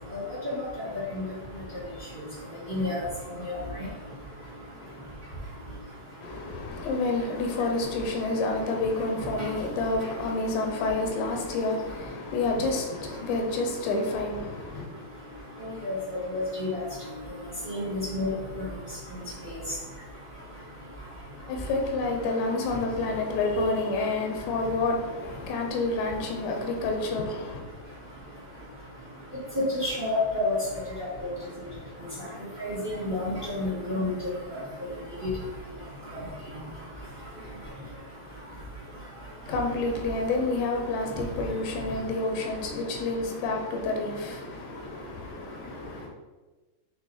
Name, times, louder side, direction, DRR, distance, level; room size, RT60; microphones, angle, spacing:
voice 1, 2.7-3.0 3.5-3.6 15.8-15.9 16.3-16.7 17.7-18.3 29.8-30.5 32.6-32.7 33.0-34.1, left 2 dB, 75° right, -7 dB, 0.5 m, -28 dB
voice 2, 6.2-14.8 21.5-27.6 39.5-46.1, left 3 dB, 80° left, 3 dB, 3.1 m, -29 dB
8.6 x 3.4 x 4.2 m, 1.2 s
omnidirectional pair, 5.1 m